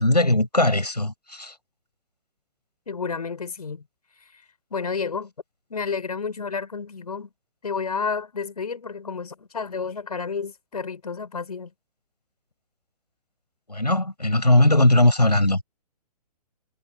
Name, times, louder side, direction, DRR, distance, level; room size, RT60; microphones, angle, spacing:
voice 1, 0.0-1.5 13.7-15.6, left 1 dB, 90° left, 6.9 m, -19 dB
voice 2, 2.9-3.8 4.7-5.3 5.7-7.3 7.6-11.7, left 5 dB, 70° left, 4.6 m, -30 dB
figure-of-eight pair, 125°, 20 cm